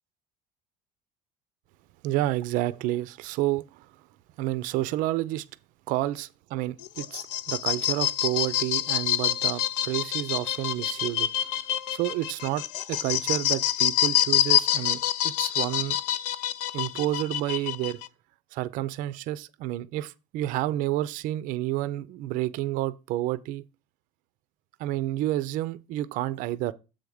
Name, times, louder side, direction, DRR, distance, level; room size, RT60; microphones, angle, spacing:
voice 1, 2.0-3.9 4.4-5.4 5.9-11.3 11.9-15.0 15.2-16.0 16.7-18.0 18.5-23.6 24.8-26.7, right 15 dB, 65° right, 0.4 m, -30 dB
sound 1, 6.8-18.1, left 12 dB, 90° left, 0.5 m, -27 dB
7.6 x 3.5 x 6.2 m
cardioid pair, 120°, 15 cm